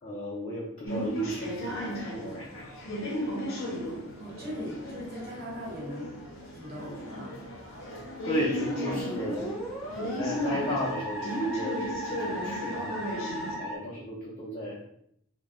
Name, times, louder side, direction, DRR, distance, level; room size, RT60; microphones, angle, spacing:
voice 1, 0.0-2.8 8.2-9.5 10.0-13.0 13.5-14.8, left 1 dB, 35° left, -7 dB, 0.6 m, -35 dB
sound 1, 0.8-13.6, equal, 70° left, 0.7 m, -35 dB
voice 2, 3.8-6.1 6.5-7.4, equal, 50° right, -4 dB, 1.0 m, -40 dB
Musical instrument, 8.5-13.8, right 1 dB, 5° right, 0.7 m, -37 dB
2.2 x 2.1 x 3.4 m, 0.72 s
head